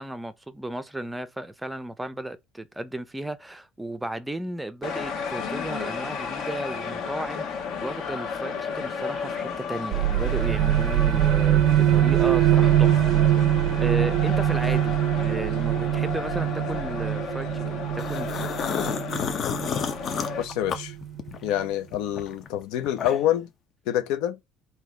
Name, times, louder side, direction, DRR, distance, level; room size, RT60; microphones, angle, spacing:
voice 1, 0.0-18.5, right 1 dB, 5° right, 0.5 m, -34 dB
sound 1, 4.8-20.4, left 6 dB, 55° left, 1.2 m, -33 dB
sound 2, 9.9-21.3, right 12 dB, 60° right, 0.3 m, -23 dB
sound 3, 18.0-21.5 21.9-23.4, left 7 dB, 40° left, 0.7 m, -31 dB
voice 2, 20.4-20.9 21.4-23.5 23.9-24.4, left 11 dB, 80° left, 0.7 m, -26 dB
3.9 x 2.8 x 3.4 m
cardioid pair, 140°, 0 cm